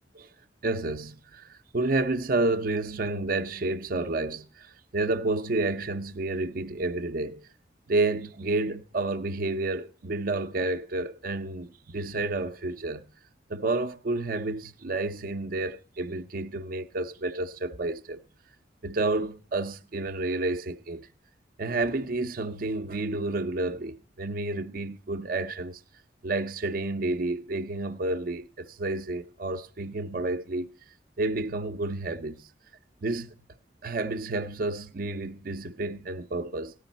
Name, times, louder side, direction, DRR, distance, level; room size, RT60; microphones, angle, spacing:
voice 1, 0.6-4.7 4.9-7.5 7.9-13.1 13.5-18.2 18.8-21.1 21.6-25.8 26.2-30.7 31.2-32.5 33.0-33.3 33.8-36.7, right 2 dB, 50° right, 0.6 m, -30 dB
14.5 x 10.5 x 4.0 m
head